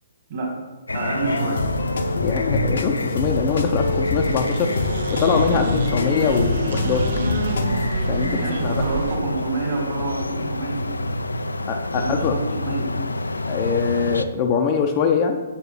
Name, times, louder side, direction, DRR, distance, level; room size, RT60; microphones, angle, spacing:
sound 1, 0.9-14.2, left 2 dB, 80° left, 0.4 m, -28 dB
voice 1, 0.9-1.6 8.4-10.8 11.9-12.9, right 3 dB, 45° right, -2 dB, 3.0 m, -28 dB
sound 2, 1.2-7.9, left 3 dB, 60° left, 0.8 m, -25 dB
voice 2, 2.2-4.7 5.1-7.1 8.1-8.7 11.7-12.3 13.5-15.4, left 6 dB, 30° left, 4 dB, 0.6 m, -23 dB
sound 3, 3.3-9.2, right 4 dB, 60° right, 0.9 m, -30 dB
7.1 x 5.7 x 5.7 m, 1.2 s
figure-of-eight pair, 125°, 0 cm